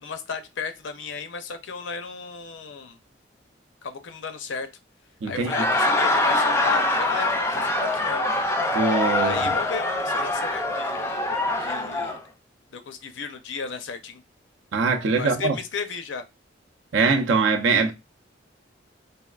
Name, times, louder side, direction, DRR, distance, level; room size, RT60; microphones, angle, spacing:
voice 1, 0.0-3.0 3.8-4.7 5.3-8.3 9.2-11.1 11.6-12.2 12.7-14.2 15.1-16.2, left 5 dB, 75° left, 0.5 m, -34 dB
voice 2, 5.2-5.5 8.7-9.6 14.7-15.6 16.9-17.9, right 4 dB, 80° right, 0.6 m, -22 dB
Laughter, 5.3-12.2, left 2 dB, 15° left, 0.3 m, -24 dB
3.5 x 2.3 x 2.3 m
head